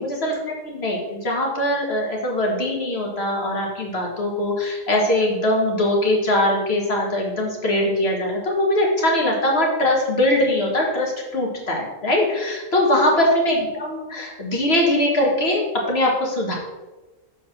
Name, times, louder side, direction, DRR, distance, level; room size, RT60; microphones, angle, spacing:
voice 1, 0.0-16.5, left 1 dB, 50° left, -1 dB, 1.9 m, -21 dB
6.8 x 4.5 x 6.0 m, 1.1 s
omnidirectional pair, 1.4 m